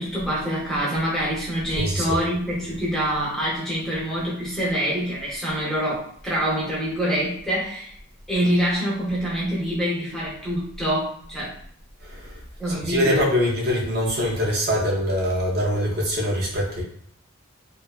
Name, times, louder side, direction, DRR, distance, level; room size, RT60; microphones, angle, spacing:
voice 1, 0.0-8.0 8.3-11.5 12.6-13.3, equal, ahead, -7 dB, 0.6 m, -25 dB
voice 2, 1.8-2.2 12.1-12.3 12.9-16.8, equal, 45° right, -3 dB, 0.5 m, -23 dB
2.5 x 2.3 x 2.3 m, 0.64 s
head